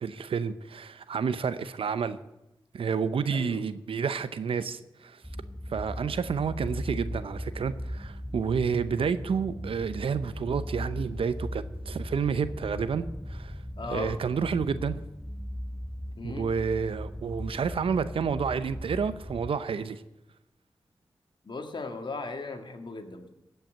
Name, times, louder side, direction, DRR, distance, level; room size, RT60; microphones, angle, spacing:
voice 1, 0.0-2.2 2.7-5.2 5.7-13.6 13.9-15.0 16.2-20.0, right 6 dB, 80° right, 0.7 m, -30 dB
voice 2, 3.3-3.6 13.8-14.1 16.2-16.5 21.4-23.3, left 3 dB, 60° left, 1.8 m, -37 dB
sound 1, 5.2-19.5, equal, ahead, 1.1 m, -38 dB
16.0 x 5.7 x 8.9 m
cardioid pair, 45°, 9 cm